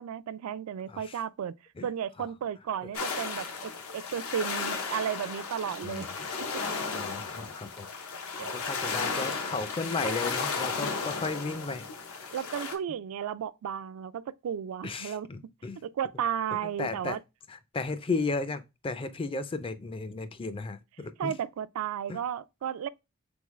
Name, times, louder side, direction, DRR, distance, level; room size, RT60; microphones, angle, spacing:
voice 1, 0.0-1.5 1.8-6.1 6.5-6.6 8.4-8.6 12.3-15.3 15.8-17.2 21.2-22.9, right 8 dB, 75° right, 0.3 m, -34 dB
voice 2, 0.9-1.2 1.8-1.9 2.2-2.3 5.8-6.3 6.9-7.9 8.4-11.9 14.8-15.8 16.5-17.2 17.5-21.3 22.1-22.2, left 3 dB, 25° left, 0.4 m, -34 dB
sound 1, 2.9-12.7, left 4 dB, 75° left, 0.8 m, -34 dB
3.8 x 3.6 x 3.0 m
head